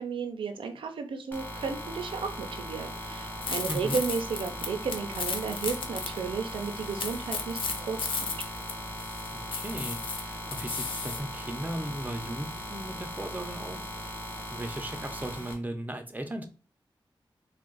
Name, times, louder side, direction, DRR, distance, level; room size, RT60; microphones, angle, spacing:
voice 1, 0.0-8.3, right 5 dB, 90° right, 5 dB, 0.5 m, -33 dB
sound 1, 1.3-15.5, equal, 20° left, 1.4 m, -39 dB
sound 2, 3.4-6.2 6.5-11.2, left 4 dB, 80° left, 0.6 m, -35 dB
voice 2, 3.7-4.0 9.3-14.2 14.5-16.5, right 1 dB, 20° right, 6 dB, 0.8 m, -37 dB
3.5 x 2.4 x 3.9 m, 0.36 s
cardioid pair, 55°, 9 cm